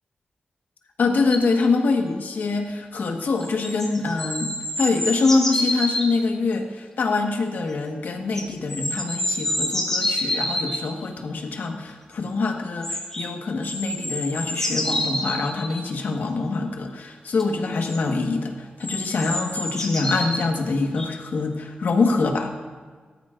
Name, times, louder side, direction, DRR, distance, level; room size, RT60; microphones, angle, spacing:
voice 1, 1.0-4.5 4.8-22.5, left 3 dB, 75° left, 3 dB, 1.4 m, -24 dB
sound 1, 1.3-1.4 3.4-6.1 8.3-10.8 12.8-13.3 13.6-15.8 17.4-17.5 17.8-18.0 18.8-20.4 21.0-21.1, left 1 dB, 15° left, 3.2 m, -27 dB
16.5 x 13.5 x 2.5 m, 1.5 s
wide cardioid pair, 120°, 3 cm